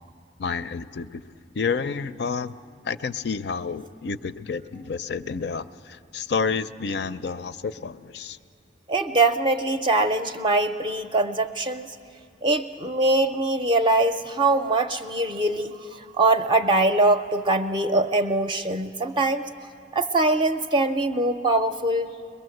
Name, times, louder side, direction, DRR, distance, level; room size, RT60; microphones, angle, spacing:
voice 1, 0.4-1.3 1.5-2.5 2.8-8.4, left 5 dB, 65° left, 14 dB, 0.5 m, -29 dB
voice 2, 8.9-12.0 12.4-19.5 19.9-22.1, right 2 dB, 25° right, 7 dB, 0.5 m, -22 dB
22.0 x 21.5 x 7.8 m, 2.3 s
head